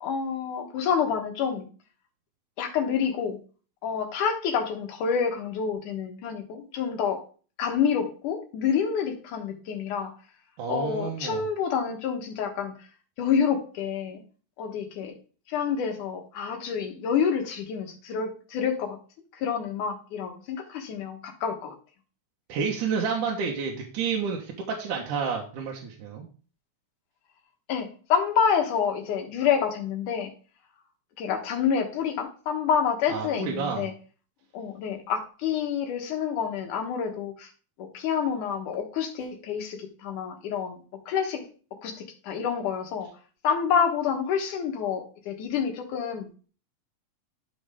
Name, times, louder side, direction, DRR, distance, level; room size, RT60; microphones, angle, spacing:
voice 1, 0.0-1.7 2.6-3.4 3.8-7.2 7.6-10.1 10.7-12.7 13.2-14.2 14.6-15.1 15.5-19.0 19.3-21.8 27.7-30.3 31.2-33.9 34.5-37.5 37.8-40.8 41.1-41.5 41.8-41.9 42.2-43.1 43.4-46.4, left 7 dB, 85° left, 3 dB, 2.9 m, -28 dB
voice 2, 10.6-11.4 22.5-26.3 33.1-33.9, right 6 dB, 85° right, -1 dB, 2.7 m, -30 dB
12.0 x 5.3 x 3.6 m, 0.39 s
omnidirectional pair, 3.5 m